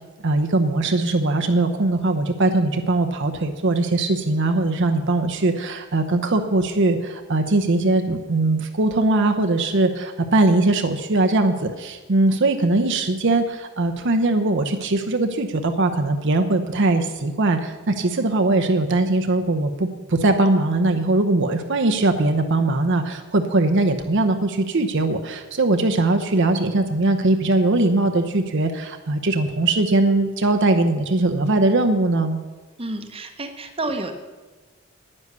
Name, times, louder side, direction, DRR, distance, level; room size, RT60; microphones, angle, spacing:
voice 1, 0.2-32.4, right 2 dB, 55° right, 5 dB, 0.8 m, -20 dB
voice 2, 32.8-34.1, right 2 dB, 25° right, 6 dB, 1.0 m, -30 dB
9.8 x 9.7 x 6.8 m, 1.3 s
head